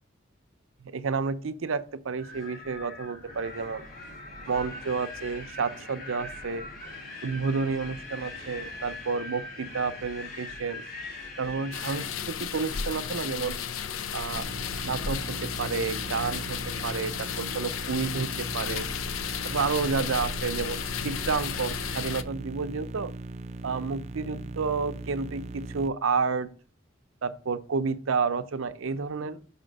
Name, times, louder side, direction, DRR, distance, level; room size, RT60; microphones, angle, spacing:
voice 1, 0.8-3.9 4.5-6.7 7.2-10.8 11.4-13.6 14.1-14.5 14.8-18.9 19.4-23.1 23.6-26.5 27.2-29.4, right 5 dB, 80° right, 12 dB, 0.6 m, -30 dB
Wind, 2.2-12.1, left 2 dB, 50° left, 2.7 m, -41 dB
sound 1, 11.7-22.2, left 7 dB, 85° left, 0.5 m, -33 dB
sound 2, 14.3-25.9, right 2 dB, 35° right, 0.4 m, -39 dB
5.6 x 4.3 x 5.1 m, 0.39 s
head